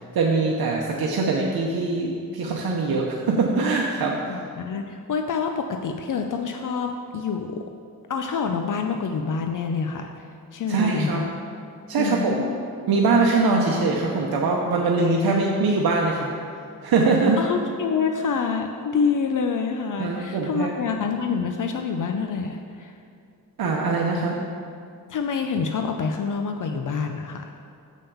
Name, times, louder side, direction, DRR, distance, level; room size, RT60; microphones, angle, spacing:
voice 1, 0.1-4.2 10.7-11.3 11.9-12.4 12.9-16.3 16.8-17.4 20.0-20.7 23.6-24.4, right 3 dB, 80° right, -1 dB, 0.8 m, -22 dB
voice 2, 4.3-7.6 8.1-10.3 10.5-11.3 12.0-12.6 17.4-23.0 25.1-27.5, left 5 dB, 60° left, 5 dB, 0.6 m, -27 dB
7.3 x 5.6 x 6.9 m, 2.3 s
wide cardioid pair, 125°, 36 cm